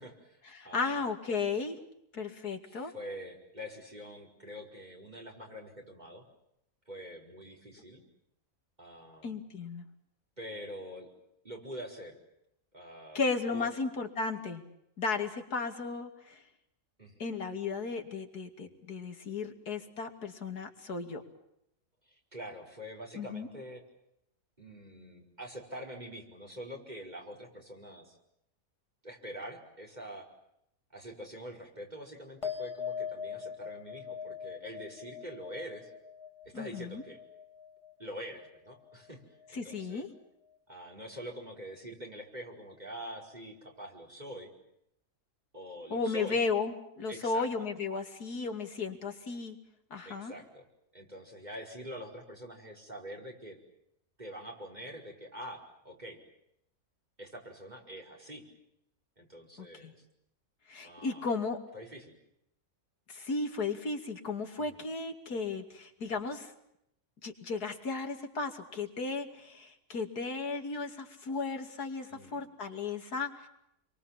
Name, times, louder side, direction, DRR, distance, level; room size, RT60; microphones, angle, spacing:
voice 1, 0.0-1.0 2.6-6.3 6.9-8.0 8.8-9.4 10.4-11.1 11.4-12.2 12.7-13.2 13.5-13.7 17.0-17.4 22.0-23.8 24.6-28.2 29.0-30.3 30.9-35.9 36.5-37.2 38.0-39.2 39.5-40.0 40.7-44.5 45.5-46.4 47.1-47.5 50.1-50.7 50.9-53.6 54.2-56.2 57.2-58.4 59.2-60.0 60.8-61.3 61.7-62.2 64.6-64.8 72.1-72.5, equal, 25° right, 1 dB, 5.3 m, -45 dB
voice 2, 0.5-1.8 2.1-2.9 9.2-9.8 13.1-14.6 15.0-16.4 17.2-21.2 23.2-23.5 36.5-37.0 39.5-40.1 45.9-49.6 49.9-50.3 59.8-59.9 60.7-61.6 63.1-66.5 67.2-73.5, left 4 dB, 90° left, 5 dB, 3.1 m, -35 dB
sound 1, 32.4-39.1 39.4-40.0, left 7 dB, 20° left, 2.1 m, -42 dB
29.5 x 23.5 x 7.4 m, 0.79 s
omnidirectional pair, 1.6 m